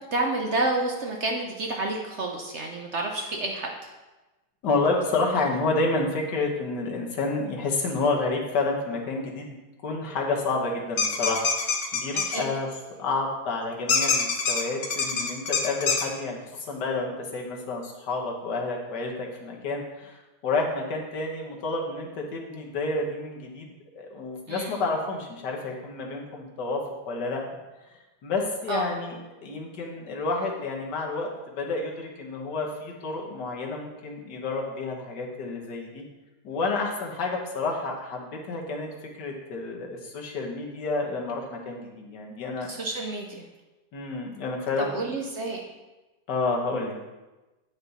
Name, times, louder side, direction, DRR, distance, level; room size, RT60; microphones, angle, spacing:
voice 1, 0.1-3.9 12.1-12.5 24.5-24.7 28.7-28.8 42.7-43.4 44.8-45.6, right 2 dB, 55° right, 1 dB, 0.9 m, -29 dB
voice 2, 4.6-9.5 9.8-12.7 13.0-27.4 28.2-36.0 36.4-38.9 39.2-42.7 43.9-45.1 46.3-47.0, left 3 dB, 80° left, 0 dB, 1.8 m, -30 dB
sound 1, 11.0-12.4 13.9-16.0, left 5 dB, 50° left, 0.8 m, -25 dB
9.3 x 5.3 x 4.1 m, 1.1 s
omnidirectional pair, 1.8 m